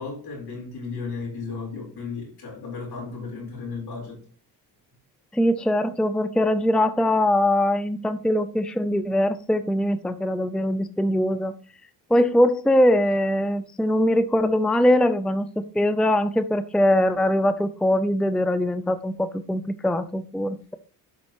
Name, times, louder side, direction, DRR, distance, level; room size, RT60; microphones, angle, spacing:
voice 1, 0.0-4.2, left 4 dB, 65° left, 4.4 m, -34 dB
voice 2, 5.3-11.5 12.1-20.8, left 1 dB, ahead, 0.5 m, -22 dB
11.5 x 5.2 x 3.1 m
cardioid pair, 75°, 41 cm